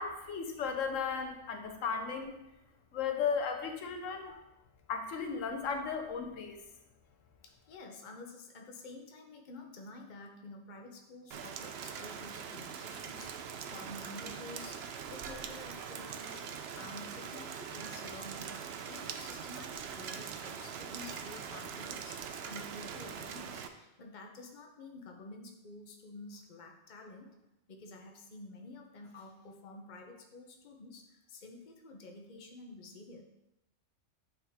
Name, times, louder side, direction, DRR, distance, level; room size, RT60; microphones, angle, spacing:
voice 1, 0.0-2.3 2.9-4.4 4.9-6.6, left 6 dB, 80° left, 5 dB, 1.1 m, -35 dB
voice 2, 7.4-14.8 15.1-18.6 18.9-27.4 27.7-33.2, left 2 dB, 40° left, 2 dB, 0.9 m, -50 dB
Rain, 11.3-23.7, right 7 dB, 65° right, 0.7 m, -42 dB
8.6 x 3.9 x 3.6 m, 0.93 s
omnidirectional pair, 1.3 m